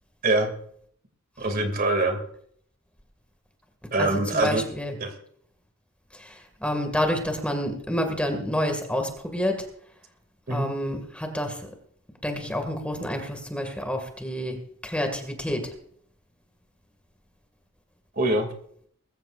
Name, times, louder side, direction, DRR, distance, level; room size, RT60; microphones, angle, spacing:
voice 1, 1.4-2.2 3.9-4.6 5.0-5.1 10.5-10.7 18.2-18.5, right 2 dB, 45° right, 5 dB, 2.5 m, -24 dB
voice 2, 4.0-4.9 6.1-9.7 10.5-11.7 12.2-15.7, equal, 5° left, 4 dB, 2.1 m, -29 dB
21.0 x 15.0 x 2.6 m, 0.64 s
head